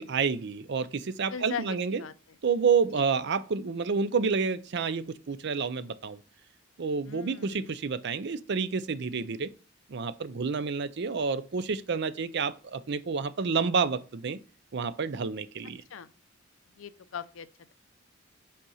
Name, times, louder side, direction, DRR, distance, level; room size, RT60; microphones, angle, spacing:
voice 1, 0.0-2.0 2.4-6.2 6.8-9.5 9.9-14.4 14.7-15.8, right 5 dB, 60° right, 0.5 m, -29 dB
voice 2, 1.3-2.1 2.9-3.0 7.0-7.7 15.9-16.1 16.7-17.7, left 7 dB, 75° left, 0.5 m, -40 dB
5.5 x 5.0 x 5.6 m
head